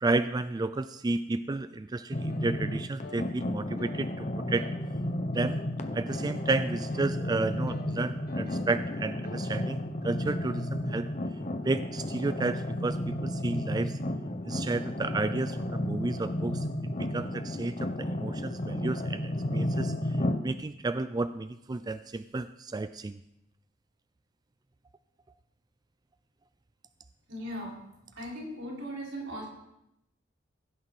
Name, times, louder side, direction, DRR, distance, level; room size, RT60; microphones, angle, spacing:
voice 1, 0.0-4.7 5.3-5.6 5.9-11.1 11.6-14.0 14.4-23.2, right 3 dB, 20° right, 12 dB, 0.3 m, -32 dB
sound 1, 2.1-20.4, left 1 dB, 35° left, 0.9 m, -33 dB
sound 2, 2.3-2.5 3.0-3.3 3.8-4.0 4.6-4.8 5.3-5.6 6.1-6.4 6.9-7.1 7.7-9.5, left 3 dB, 50° left, 1.4 m, -48 dB
voice 2, 27.3-27.8 28.2-29.5, equal, 80° right, -3 dB, 5.2 m, -38 dB
15.5 x 9.4 x 4.2 m, 0.84 s
head